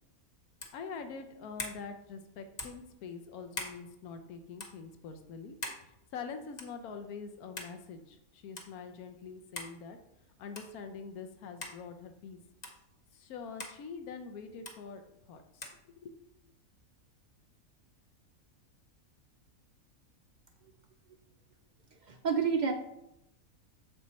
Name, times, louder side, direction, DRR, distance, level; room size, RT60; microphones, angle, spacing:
sound 1, 0.6-0.8 1.6-1.8 2.6-2.8 3.5-3.8 4.6-4.7 5.6-5.8 6.6-6.8 7.6-7.7 8.6-8.7 9.5-9.8 10.5-10.8 11.6-11.8 12.6-12.8 13.6-13.8 14.6-14.8 15.6-15.8, left 2 dB, 35° left, 0.9 m, -41 dB
voice 1, 0.7-5.5 5.8-10.0 10.4-12.4 13.1-15.0 15.3-15.7 16.0-16.1, left 5 dB, 90° left, 7 dB, 1.2 m, -44 dB
voice 2, 22.1-22.7, right 6 dB, 80° right, 5 dB, 0.4 m, -28 dB
7.3 x 4.5 x 4.2 m, 0.83 s
omnidirectional pair, 1.5 m